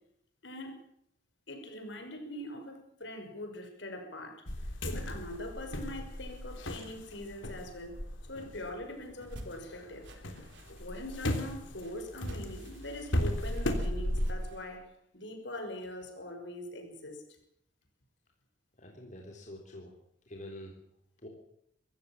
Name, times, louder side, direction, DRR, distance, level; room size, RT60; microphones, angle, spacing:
voice 1, 0.4-0.8 1.5-4.4 4.9-8.0 8.3-10.3 10.8-17.2, left 1 dB, 70° left, 5 dB, 5.9 m, -42 dB
sound 1, 4.5-9.6 9.9-14.3, left 1 dB, 90° left, 3.5 m, -36 dB
sound 2, 9.1-14.6, right 1 dB, 70° right, 4.0 m, -51 dB
voice 2, 18.8-19.9 20.3-20.7 21.2-21.3, left 1 dB, 40° left, 1 dB, 3.7 m, -46 dB
24.5 x 15.0 x 7.4 m, 0.73 s
head